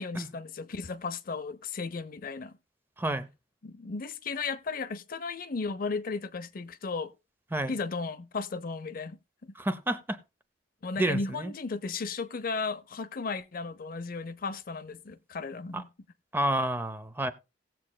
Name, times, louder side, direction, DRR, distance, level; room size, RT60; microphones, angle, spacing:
voice 1, 0.0-2.5 3.6-7.1 7.7-9.2 10.8-15.9, left 4 dB, 50° left, 0.6 m, -35 dB
voice 2, 3.0-3.3 7.5-7.7 9.6-10.2 11.0-11.5 15.7-15.8 16.3-17.3, right 1 dB, 10° right, 0.6 m, -29 dB
18.0 x 7.5 x 2.2 m
head